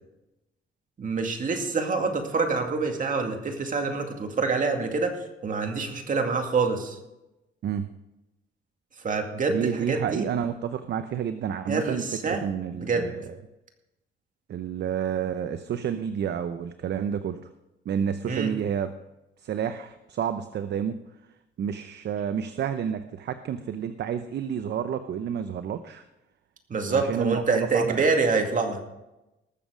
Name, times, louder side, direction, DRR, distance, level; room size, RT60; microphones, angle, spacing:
voice 1, 1.0-7.0 9.0-10.3 11.7-12.4 12.8-13.1 18.3-18.5 26.7-28.9, right 4 dB, 40° right, 4 dB, 2.3 m, -26 dB
voice 2, 9.5-13.4 14.5-17.4 17.9-18.9 19.4-21.0 21.6-26.0 26.9-28.0, right 8 dB, 60° right, 10 dB, 0.7 m, -30 dB
19.5 x 7.2 x 5.1 m, 0.96 s
cardioid pair, 90°, 20 cm